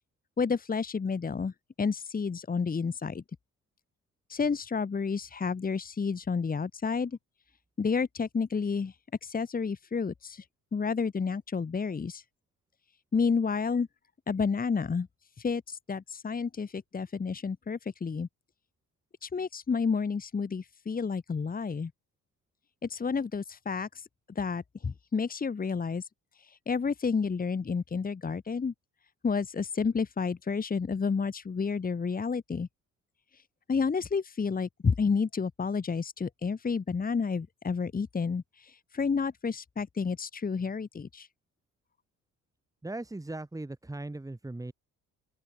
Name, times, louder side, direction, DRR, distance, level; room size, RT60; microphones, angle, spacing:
voice 1, 0.4-3.2 4.3-7.2 7.8-8.9 9.2-10.4 10.7-12.2 13.1-13.9 14.3-15.1 15.4-18.3 19.2-21.9 22.8-24.1 24.4-26.1 26.4-28.7 29.2-32.7 33.3-33.4 33.7-41.3, left 5 dB, 25° left, 2.3 m, -30 dB
voice 2, 42.8-44.7, right 2 dB, 10° right, 4.4 m, -38 dB
open air
cardioid pair, 130°, 34 cm